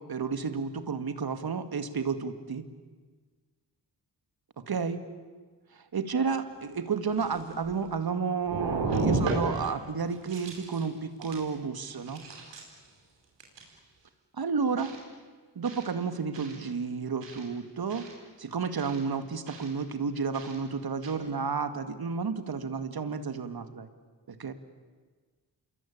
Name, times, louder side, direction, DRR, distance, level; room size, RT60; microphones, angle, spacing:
voice 1, 0.0-2.7 4.6-5.0 5.7-12.2 14.4-14.9 15.6-18.1 18.4-23.9 24.3-24.5, right 5 dB, 60° right, 10 dB, 2.2 m, -31 dB
sound 1, 6.6-6.7 7.1-8.1 8.4-9.7 10.1-10.9 11.2-11.5 11.8-12.9 13.4-13.7 14.8-15.0 15.7-15.9 16.3-16.6 17.2-17.4 17.9-18.1 18.8-19.0 19.5-19.7 20.3-20.6 21.0-21.1, right 3 dB, 90° right, 4.9 m, -33 dB
27.0 x 22.5 x 8.8 m, 1.4 s
cardioid pair, 50°, 41 cm